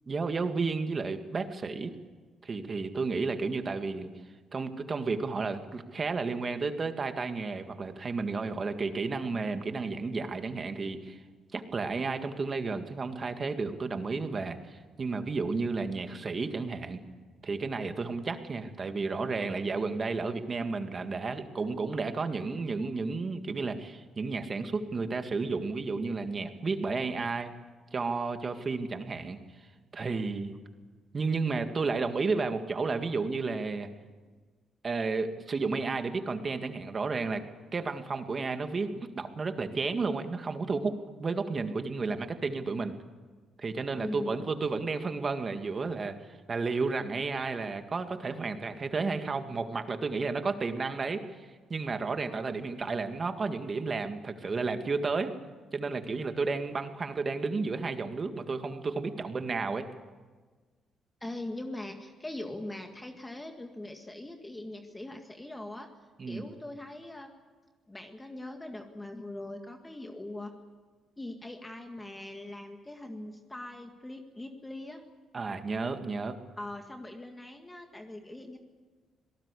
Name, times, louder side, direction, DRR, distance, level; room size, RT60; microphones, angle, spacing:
voice 1, 0.1-1.9 2.4-4.1 4.5-11.2 11.5-17.0 17.4-27.5 27.9-29.4 29.9-30.5 31.1-33.9 34.8-37.4 37.7-38.9 39.2-42.9 43.6-51.2 51.7-55.3 55.7-59.9 66.2-66.5 75.3-76.4, right 4 dB, 35° right, 7 dB, 1.9 m, -32 dB
voice 2, 44.0-44.4 61.2-65.9 66.3-67.3 67.9-70.5 71.2-75.0 76.6-78.6, left 1 dB, 15° left, 4 dB, 1.9 m, -41 dB
26.5 x 18.0 x 8.4 m, 1.4 s
cardioid pair, 90°, 0 cm